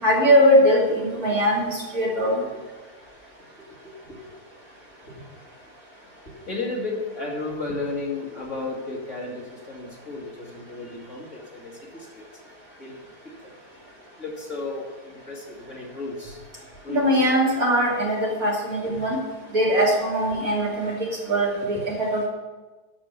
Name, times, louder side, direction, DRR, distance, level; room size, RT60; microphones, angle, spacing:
voice 1, 0.0-2.4 16.9-19.2 19.5-22.3, equal, 60° right, -5 dB, 3.6 m, -21 dB
voice 2, 2.2-2.6 3.8-4.3 5.1-5.2 6.3-12.2 12.8-13.0 13.2-13.8 14.2-16.4 16.8-17.1 18.9-19.0 21.6-21.8, left 3 dB, 45° left, -3 dB, 2.7 m, -34 dB
12.0 x 5.0 x 8.2 m, 1.3 s
omnidirectional pair, 1.7 m